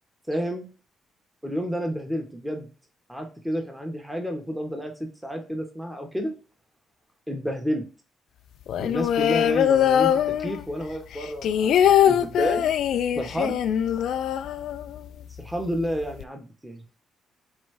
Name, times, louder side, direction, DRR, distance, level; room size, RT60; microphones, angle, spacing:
voice 1, 0.3-0.7 1.4-2.7 3.1-4.9 5.2-6.3 7.3-7.8 8.8-12.6 13.1-13.6 15.4-16.8, equal, 5° right, 3 dB, 1.1 m, -30 dB
sound 1, 8.7-10.8 11.1-15.1 15.4-15.5 15.7-16.2, left 9 dB, 75° left, 0.3 m, -22 dB
4.3 x 3.2 x 3.2 m, 0.34 s
cardioid pair, 90°, 0 cm